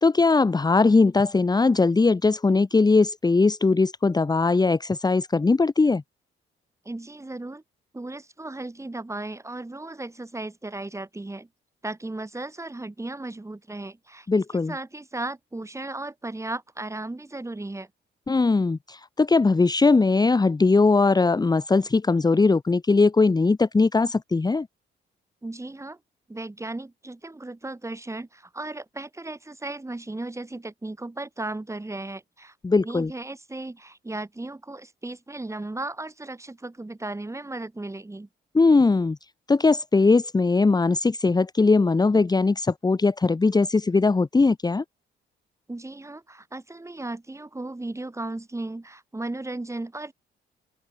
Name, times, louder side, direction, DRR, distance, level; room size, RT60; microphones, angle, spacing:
voice 1, 0.0-6.0 14.3-14.7 18.3-24.7 32.6-33.1 38.5-39.2 39.5-44.8, left 3 dB, 20° left, 1.2 m, -20 dB
voice 2, 6.8-7.6 7.9-11.5 11.8-14.3 14.5-17.9 25.4-26.0 26.3-32.5 32.8-38.3 45.7-50.1, right 2 dB, 15° right, 6.5 m, -35 dB
open air
cardioid pair, 90°, 20 cm